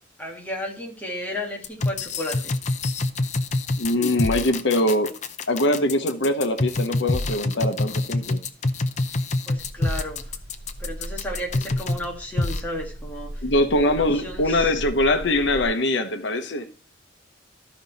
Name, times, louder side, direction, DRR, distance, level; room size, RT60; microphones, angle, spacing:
voice 1, 0.2-2.6 9.5-10.4 10.8-13.4 13.9-14.8, left 1 dB, 10° left, -1 dB, 1.9 m, -33 dB
sound 1, 1.6-12.0 12.4-12.6, left 2 dB, 35° left, 0.6 m, -26 dB
voice 2, 3.8-5.1 5.5-8.4 13.4-16.7, left 1 dB, 70° left, 8 dB, 1.0 m, -22 dB
sound 2, 9.6-15.7, equal, 40° right, 1.2 m, -37 dB
12.5 x 5.2 x 4.1 m, 0.37 s
head